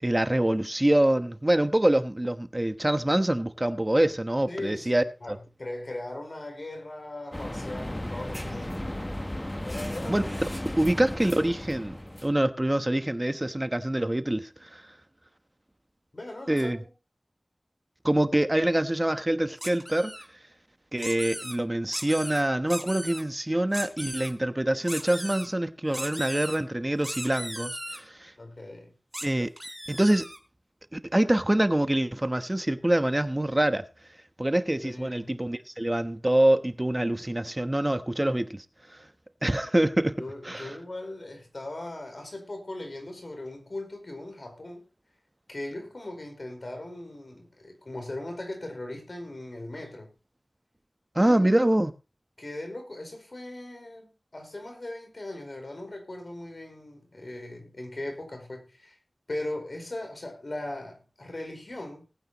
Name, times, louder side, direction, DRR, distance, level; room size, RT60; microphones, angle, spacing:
voice 1, 0.0-5.4 10.1-10.2 10.6-11.9 12.2-14.8 16.5-16.8 18.0-20.1 20.9-28.3 29.2-29.5 29.9-30.3 30.9-33.8 34.4-38.6 39.4-40.2 40.4-40.8 51.1-51.9, right 1 dB, 25° right, 1.1 m, -25 dB
voice 2, 4.5-8.7 9.6-10.9 16.1-16.9 28.4-28.9 34.8-35.4 40.2-44.9 45.5-50.1 51.2-51.5 52.4-59.0 59.3-62.1, left 1 dB, 60° left, 4.7 m, -39 dB
sound 1, 7.3-12.3, left 1 dB, 20° left, 1.1 m, -35 dB
sound 2, 19.6-20.3 21.0-21.6 21.9-22.4 22.7-23.2 23.7-24.3 24.9-25.5 25.9-26.6 27.0-28.0 29.1-29.3 29.6-30.4, equal, 5° right, 3.5 m, -37 dB
19.5 x 9.1 x 3.1 m
wide cardioid pair, 50°, 0 cm